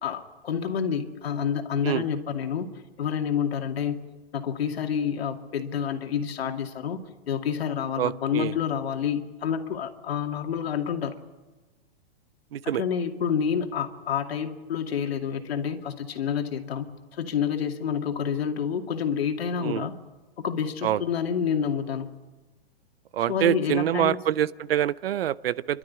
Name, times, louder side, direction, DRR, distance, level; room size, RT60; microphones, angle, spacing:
voice 1, 0.0-2.7 3.0-4.0 4.3-7.0 7.3-11.1 12.6-19.9 20.4-22.1 23.3-24.2, left 7 dB, 70° left, 5 dB, 2.5 m, -28 dB
voice 2, 8.0-8.5 12.5-12.8 19.6-19.9 20.8-21.0 23.1-25.8, right 11 dB, 65° right, 18 dB, 0.7 m, -26 dB
28.5 x 12.5 x 9.7 m, 1.2 s
hypercardioid pair, 175°, 32 cm